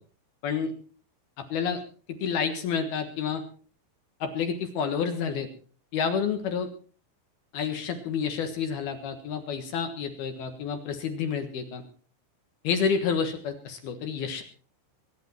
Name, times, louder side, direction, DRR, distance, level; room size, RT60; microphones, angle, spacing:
voice 1, 1.5-1.8 2.2-3.4 4.2-5.5 5.9-6.7 7.5-11.8 12.6-14.4, left 6 dB, 65° left, 6 dB, 2.9 m, -29 dB
23.0 x 10.5 x 4.4 m, 0.40 s
omnidirectional pair, 5.6 m